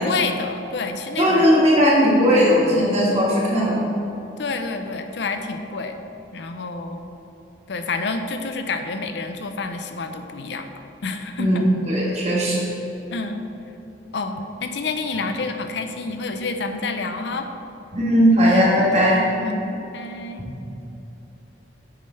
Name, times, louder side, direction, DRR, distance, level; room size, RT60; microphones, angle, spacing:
voice 1, 0.0-1.5 4.4-6.0 6.3-7.1 7.7-10.7 11.0-11.7 13.1-13.5 14.1-17.5 19.4-20.5, left 3 dB, 70° left, 7 dB, 0.5 m, -28 dB
voice 2, 1.2-3.8 11.4-11.6 11.9-12.7 17.9-19.3, equal, 35° right, -6 dB, 1.6 m, -17 dB
8.6 x 3.3 x 5.5 m, 2.9 s
head